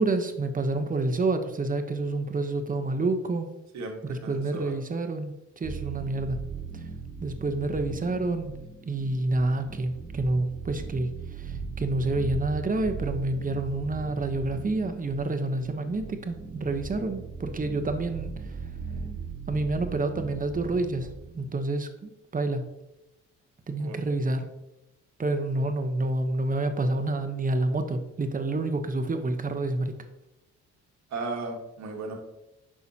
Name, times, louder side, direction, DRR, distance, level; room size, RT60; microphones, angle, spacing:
voice 1, 0.0-3.5 4.0-6.4 7.2-8.5 8.8-11.1 11.4-18.3 19.5-22.7 23.7-24.5 25.2-30.0, right 2 dB, 25° right, 7 dB, 1.0 m, -28 dB
voice 2, 3.7-4.7 23.8-24.1 31.1-32.1, right 3 dB, 65° right, 2 dB, 1.6 m, -36 dB
sound 1, 5.6-21.6, right 5 dB, 45° right, 1.3 m, -38 dB
9.6 x 5.7 x 2.8 m, 0.91 s
cardioid pair, 90°, 30 cm